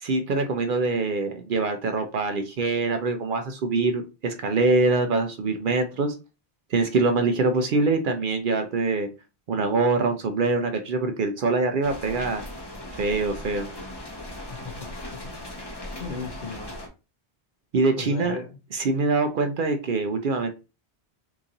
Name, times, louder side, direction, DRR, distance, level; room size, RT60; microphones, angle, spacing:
voice 1, 0.0-6.1 6.7-9.1 9.5-12.4 12.9-13.7 17.7-18.4 18.7-20.5, right 3 dB, 60° right, 7 dB, 0.6 m, -24 dB
sound 1, 11.8-16.9, left 1 dB, 25° left, 0.7 m, -38 dB
voice 2, 14.5-15.4 16.0-16.8 18.0-18.6, left 4 dB, 55° left, 5 dB, 0.8 m, -37 dB
2.9 x 2.7 x 3.7 m, 0.30 s
omnidirectional pair, 1.1 m